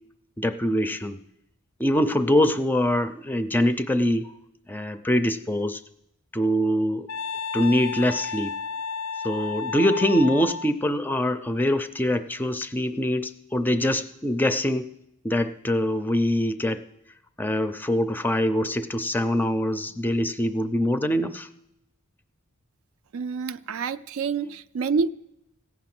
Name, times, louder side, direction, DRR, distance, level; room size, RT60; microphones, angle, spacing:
voice 1, 0.4-1.2 1.8-4.3 4.7-5.8 6.3-7.1 7.5-8.5 9.2-14.9 15.2-16.8 17.4-21.5, left 1 dB, 10° left, 0.4 m, -24 dB
Wind instrument woodwind instrument, 7.1-10.7, left 5 dB, 90° left, 0.4 m, -32 dB
voice 2, 23.1-25.1, right 5 dB, 75° right, 0.4 m, -27 dB
15.5 x 8.5 x 5.9 m
head